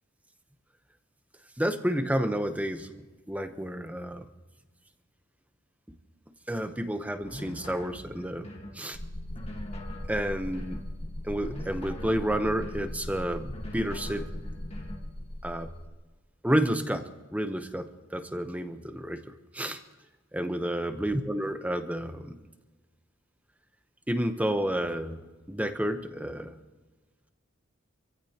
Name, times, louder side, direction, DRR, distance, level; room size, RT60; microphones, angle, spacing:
voice 1, 1.6-2.9 3.3-4.2 6.5-8.5 8.7-9.0 10.1-10.8 11.2-14.3 15.4-15.7 16.4-19.8 20.3-22.4 24.1-25.2 25.5-26.5, right 1 dB, 5° right, 7 dB, 0.9 m, -30 dB
sound 1, 7.2-8.8 9.3-10.9 11.4-13.0 13.5-15.1, left 1 dB, 30° left, 1.5 m, -44 dB
sound 2, 8.9-15.9, left 1 dB, 60° left, 2.1 m, -39 dB
26.5 x 15.5 x 2.9 m, 1.3 s
head